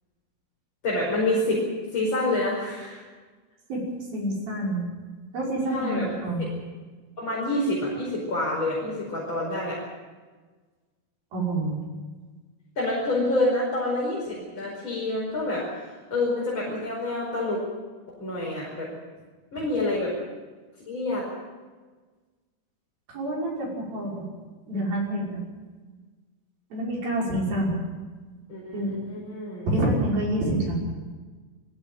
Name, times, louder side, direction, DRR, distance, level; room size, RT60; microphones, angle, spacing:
voice 1, 0.8-1.6 1.9-3.0 5.7-6.1 6.4-6.5 7.2-9.8 12.8-17.6 18.1-18.9 19.5-20.1 20.9-21.3 28.5-29.7, left 2 dB, 30° left, -5 dB, 5.7 m, -27 dB
voice 2, 4.1-4.8 5.3-6.4 11.3-11.7 23.1-24.3 24.7-25.4 26.7-27.8 28.7-29.1 29.7-30.8, right 1 dB, 70° right, -3 dB, 7.6 m, -27 dB
21.5 x 16.0 x 9.1 m, 1.4 s
omnidirectional pair, 4.4 m